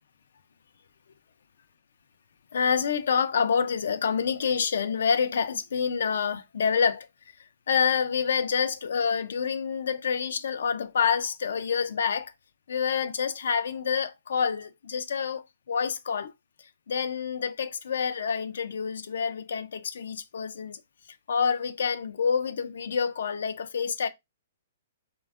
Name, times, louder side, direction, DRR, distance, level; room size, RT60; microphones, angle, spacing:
voice 1, 2.5-7.1 7.7-12.3 12.7-16.3 16.9-20.8 21.3-24.1, left 6 dB, 75° left, 0.3 m, -27 dB
3.3 x 2.1 x 2.3 m
hypercardioid pair, 160°, 0 cm